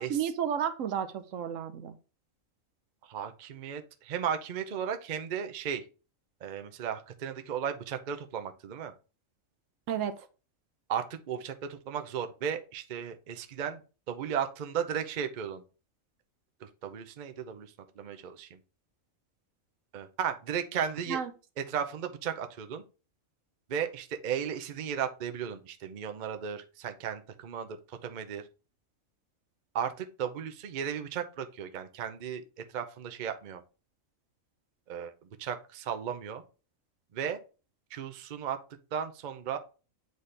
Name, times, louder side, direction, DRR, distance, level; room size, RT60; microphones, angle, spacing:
voice 1, 0.0-1.9 9.9-10.2 21.1-21.3, right 8 dB, 70° right, 9 dB, 1.0 m, -32 dB
voice 2, 3.1-5.8 6.4-8.9 10.9-13.8 14.1-15.6 16.6-18.6 19.9-21.2 21.6-22.8 23.7-28.4 29.7-33.6 34.9-35.1 35.4-36.4 37.1-37.4 37.9-38.6 38.9-39.6, right 8 dB, 50° right, 7 dB, 0.6 m, -35 dB
8.1 x 4.1 x 3.3 m, 0.34 s
omnidirectional pair, 1.4 m